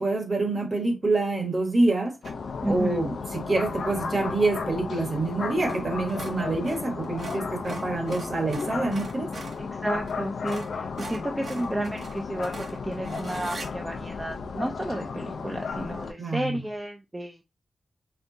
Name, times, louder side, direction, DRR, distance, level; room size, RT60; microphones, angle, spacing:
voice 1, 0.0-2.2 2.6-9.3 16.2-16.6, right 2 dB, 30° right, 1.1 m, -26 dB
sound 1, 2.2-16.1, left 5 dB, 85° left, 0.6 m, -34 dB
sound 2, 2.2-2.5 5.6-5.8 6.1-9.6 10.1-10.2 10.5-13.7, right 3 dB, 55° right, 1.0 m, -42 dB
voice 2, 2.6-3.0 9.6-17.4, right 1 dB, 10° right, 0.5 m, -32 dB
4.4 x 3.5 x 2.6 m
wide cardioid pair, 175°, 0 cm